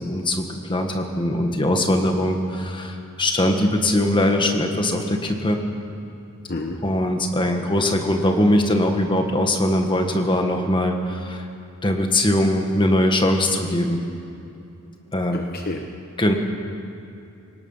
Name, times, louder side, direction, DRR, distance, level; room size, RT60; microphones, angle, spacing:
voice 1, 0.0-5.6 6.8-11.4 11.8-14.0 15.1-15.4 16.2-16.3, left 1 dB, 20° left, 4 dB, 1.6 m, -21 dB
voice 2, 15.3-15.8, left 2 dB, 45° left, 3 dB, 1.1 m, -29 dB
24.0 x 19.0 x 5.7 m, 2.7 s
head